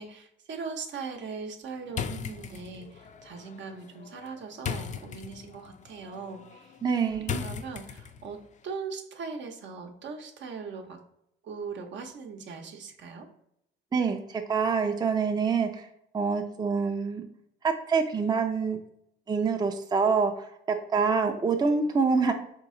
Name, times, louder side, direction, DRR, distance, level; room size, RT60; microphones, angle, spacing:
voice 1, 0.0-6.8 7.1-11.0 11.4-13.3, right 5 dB, 65° right, 4 dB, 0.8 m, -40 dB
sound 1, 1.9-8.4, left 7 dB, 40° left, 0.4 m, -38 dB
voice 2, 6.8-7.4 13.9-15.9 16.1-17.2 17.6-18.8 19.3-20.5 20.9-22.3, right 5 dB, 20° right, 5 dB, 0.5 m, -26 dB
4.2 x 3.0 x 3.7 m, 0.76 s
cardioid pair, 90°, 20 cm